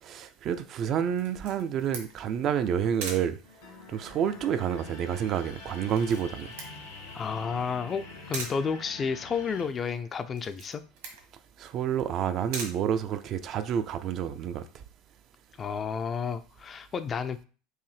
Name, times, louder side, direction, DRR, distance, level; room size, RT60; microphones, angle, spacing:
voice 1, 0.0-3.4 3.9-6.5 11.6-14.8, right 8 dB, 45° right, 0.4 m, -29 dB
Camera, 1.2-13.7, right 4 dB, 70° right, 1.4 m, -44 dB
sound 1, 3.4-9.7, left 3 dB, 75° left, 1.0 m, -45 dB
voice 2, 7.1-10.8 15.6-17.4, left 6 dB, 30° left, 0.4 m, -31 dB
4.6 x 2.6 x 3.3 m
figure-of-eight pair, 75°, 0 cm